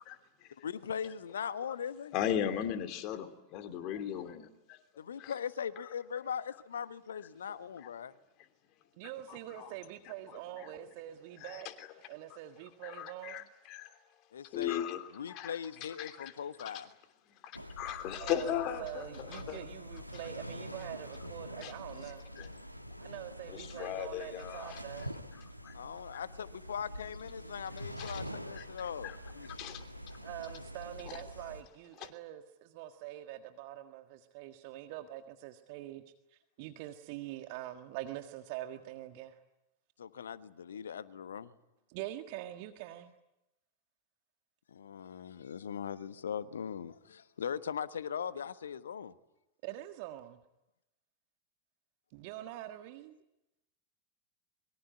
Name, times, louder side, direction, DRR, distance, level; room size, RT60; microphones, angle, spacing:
voice 1, 0.0-0.7 1.6-1.7 2.1-4.8 5.2-5.3 7.1-7.2 7.8-7.9 9.3-9.7 10.0-10.7 11.4-11.9 12.3-12.4 12.8-14.0 14.5-16.3 16.6-16.9 17.3-19.6 20.1-20.2 21.6-21.7 22.4-22.5 23.5-24.8 25.3-25.8 26.1-26.2 28.0-28.2 28.5-28.7 29.0-29.2 29.5-30.2 31.1-31.2 32.0-32.1, left 10 dB, 40° left, 8 dB, 3.0 m, -38 dB
voice 2, 0.6-2.1 5.0-8.1 14.3-14.8 15.2-16.9 25.7-29.5 40.0-41.5 44.7-49.1, left 7 dB, 65° left, 14 dB, 1.3 m, -40 dB
voice 3, 9.0-11.7 12.1-13.5 18.1-22.2 23.0-25.1 30.2-36.0 36.3-39.4 41.9-43.1 49.6-50.4 52.1-53.2, right 13 dB, 45° right, 7 dB, 1.6 m, -44 dB
sound 1, 17.5-31.6, equal, 90° left, 1.6 m, -46 dB
24.5 x 23.5 x 9.6 m, 0.90 s
figure-of-eight pair, 90°, 0 cm